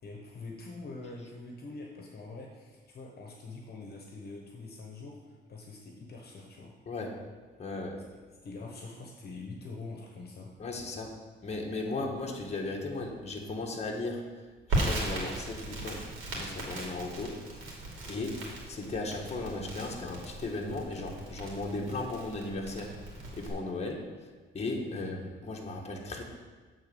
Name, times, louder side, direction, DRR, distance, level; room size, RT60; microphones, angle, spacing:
voice 1, 0.0-6.7 8.4-10.5 24.9-25.1, left 3 dB, 55° left, 0 dB, 1.2 m, -44 dB
voice 2, 6.9-7.2 7.6-8.0 10.6-11.2 11.4-17.7 18.1-26.2, left 2 dB, 35° left, 0 dB, 1.4 m, -36 dB
Crackle, 14.7-23.5, right 2 dB, 85° right, 2.4 m, -37 dB
8.1 x 4.1 x 6.9 m, 1.4 s
cardioid pair, 90°, 20 cm